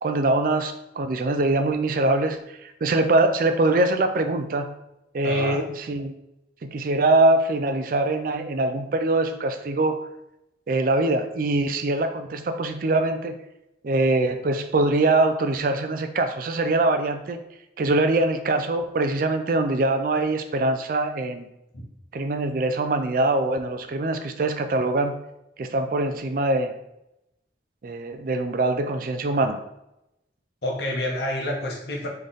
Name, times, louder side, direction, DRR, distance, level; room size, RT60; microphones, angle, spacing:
voice 1, 0.0-4.7 5.1-6.1 6.6-10.0 10.7-13.4 13.8-17.4 17.8-21.5 22.1-25.2 25.6-26.7 27.8-29.6, right 2 dB, 50° right, 7 dB, 0.4 m, -23 dB
voice 2, 5.2-5.7 21.7-21.8 30.6-32.1, left 1 dB, 70° left, -1 dB, 1.1 m, -28 dB
3.8 x 3.3 x 4.0 m, 0.86 s
head